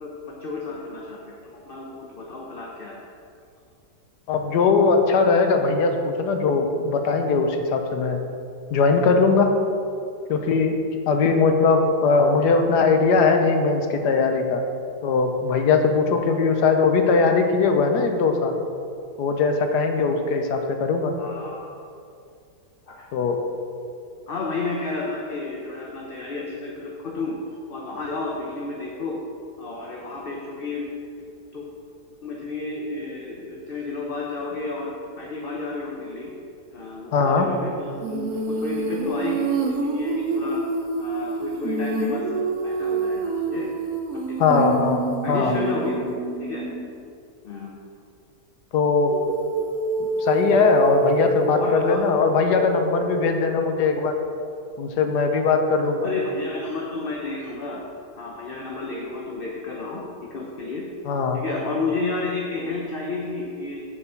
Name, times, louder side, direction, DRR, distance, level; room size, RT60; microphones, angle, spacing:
voice 1, 0.0-3.0 21.2-21.7 22.9-23.1 24.3-27.4 27.7-29.2 29.6-30.8 31.2-31.3 31.5-31.7 32.2-36.3 36.7-40.6 41.0-43.7 44.1-44.7 45.2-46.0 46.4-46.7 47.4-47.7 51.5-52.0 56.0-57.8 58.2-60.0 60.3-60.9 61.3-63.8, left 3 dB, 45° left, -2 dB, 0.8 m, -31 dB
voice 2, 4.3-8.2 8.7-9.5 10.3-10.8 11.1-14.6 15.0-18.6 19.2-21.1 23.1-23.4 37.1-37.5 44.4-45.0 45.3-45.5 48.7-49.2 50.0-54.1 54.8-56.1 61.1-61.4, left 4 dB, 80° left, 5 dB, 1.4 m, -20 dB
Female singing, 38.0-46.9 49.1-53.3, right 3 dB, 65° right, 1.2 m, -27 dB
7.0 x 5.2 x 7.0 m, 2.4 s
omnidirectional pair, 1.8 m